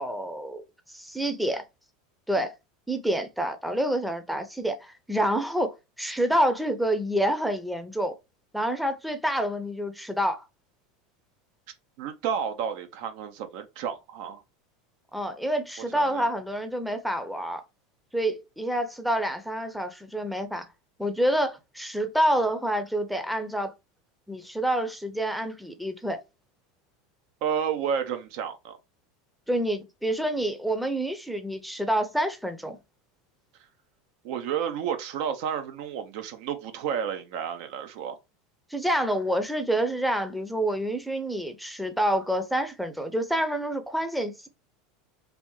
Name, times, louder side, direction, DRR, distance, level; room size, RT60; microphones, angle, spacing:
voice 1, 0.0-1.6 2.3-2.5 2.9-8.2 8.5-10.4 15.1-17.6 18.1-20.7 21.0-23.7 24.3-26.2 29.5-32.8 38.7-44.5, right 1 dB, ahead, 0.6 m, -28 dB
voice 2, 12.0-14.4 15.9-16.3 27.4-28.8 34.2-38.2, right 8 dB, 65° right, 0.5 m, -31 dB
3.4 x 2.5 x 3.0 m
hypercardioid pair, 90°, 0 cm